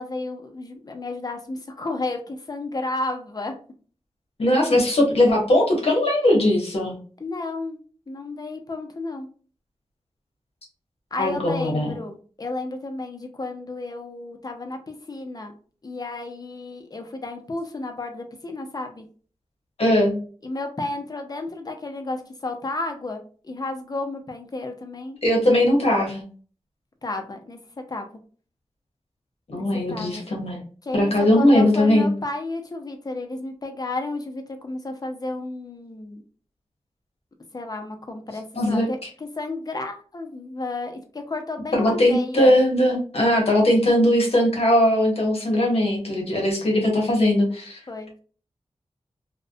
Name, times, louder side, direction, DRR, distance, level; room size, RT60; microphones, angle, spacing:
voice 1, 0.0-3.5 7.2-7.8 8.1-9.3 11.1-15.5 15.8-19.1 20.4-25.2 27.0-28.1 29.5-30.2 30.8-36.2 37.5-42.5 47.9-48.1, left 2 dB, 35° left, 5 dB, 0.5 m, -32 dB
voice 2, 4.4-7.0 11.1-11.9 19.8-20.2 25.2-26.2 29.5-30.6 30.9-32.1 38.6-38.9 41.7-47.8, left 1 dB, 65° left, 0 dB, 0.9 m, -19 dB
2.4 x 2.1 x 2.5 m, 0.41 s
wide cardioid pair, 85°, 11 cm